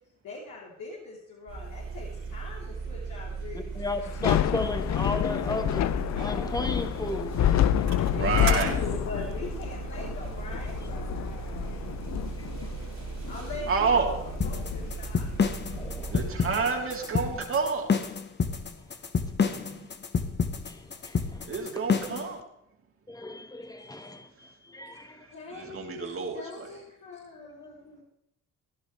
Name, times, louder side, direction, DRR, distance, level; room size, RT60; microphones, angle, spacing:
voice 1, 0.2-3.7 8.1-11.8 13.3-14.2 14.4-15.3 25.3-28.0, left 3 dB, 80° left, -6 dB, 3.8 m, -41 dB
sound 1, 1.5-16.3, right 5 dB, 65° right, 4.4 m, -37 dB
voice 2, 3.5-7.8 12.4-13.1 15.8-16.2 18.9-19.0 20.6-21.5 23.1-25.3 25.6-25.7, left 2 dB, 10° left, 7 dB, 1.7 m, -35 dB
Thunder / Rain, 4.0-17.2, left 11 dB, 65° left, 0.7 m, -29 dB
voice 3, 8.1-8.8 13.7-14.2 16.1-17.9 19.4-19.9 21.4-22.4 25.5-26.7, right 5 dB, 45° right, 1 dB, 3.3 m, -29 dB
sound 2, 14.4-22.3, left 5 dB, 35° left, 1.3 m, -28 dB
17.0 x 11.5 x 3.4 m, 0.78 s
cardioid pair, 90°, 30 cm